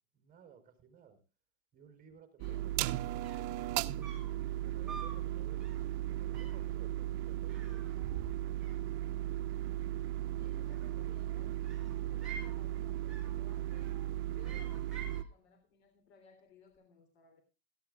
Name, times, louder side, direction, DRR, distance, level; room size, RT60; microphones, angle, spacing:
voice 1, 0.1-1.2 1.7-3.7 4.6-8.3 10.3-10.6, right 7 dB, 25° right, 7 dB, 4.3 m, -58 dB
sound 1, 2.4-15.2, right 14 dB, 55° right, 0.8 m, -36 dB
sound 2, 3.2-3.6 4.0-4.4 4.9-5.2 5.6-5.9 6.3-6.7 7.5-8.3 8.6-9.3 10.5-11.2 11.6-12.6 13.1-13.4 13.7-14.1 14.4-15.3, right 5 dB, ahead, 6.6 m, -49 dB
voice 2, 10.4-11.6 11.9-14.0 14.3-17.4, left 5 dB, 75° left, 7 dB, 3.4 m, -61 dB
17.5 x 15.0 x 2.3 m, 0.28 s
supercardioid pair, 145°, 33 cm